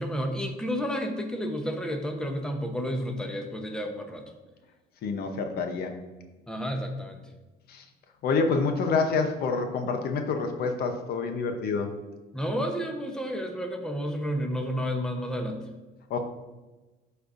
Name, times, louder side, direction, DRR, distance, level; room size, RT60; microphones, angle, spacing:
voice 1, 0.0-4.2 6.5-7.2 12.3-15.6, equal, 5° left, 4 dB, 0.9 m, -31 dB
voice 2, 5.0-5.9 7.7-7.8 8.2-11.9 16.1-16.2, left 4 dB, 65° left, 6 dB, 0.8 m, -27 dB
12.0 x 4.3 x 2.6 m, 1.2 s
cardioid pair, 110°, 17 cm